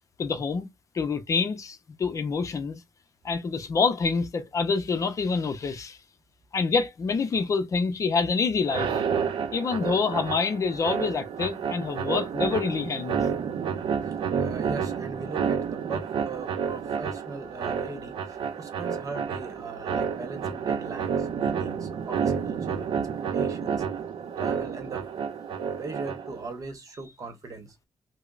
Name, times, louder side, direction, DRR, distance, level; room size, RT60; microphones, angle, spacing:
voice 1, 0.2-0.7 0.9-2.8 3.2-6.0 6.5-9.0 9.5-13.2, left 4 dB, 40° left, 0.6 m, -26 dB
sound 1, 8.6-26.5, right 7 dB, 80° right, 0.6 m, -30 dB
voice 2, 14.4-22.9 23.3-23.8 24.4-25.0 25.8-27.7, right 3 dB, 45° right, 1.0 m, -39 dB
5.1 x 2.0 x 2.4 m
wide cardioid pair, 160°, 8 cm